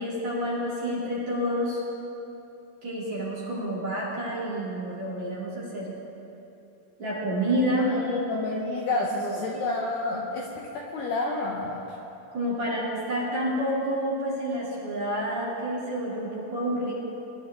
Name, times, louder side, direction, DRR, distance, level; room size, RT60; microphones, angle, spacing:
voice 1, 0.0-1.8 2.8-6.0 7.0-7.9 9.2-9.4 12.3-16.9, equal, 40° right, -8 dB, 3.7 m, -29 dB
voice 2, 7.8-12.0, left 2 dB, 70° left, -2 dB, 2.7 m, -30 dB
23.5 x 12.5 x 3.7 m, 3.0 s
omnidirectional pair, 5.8 m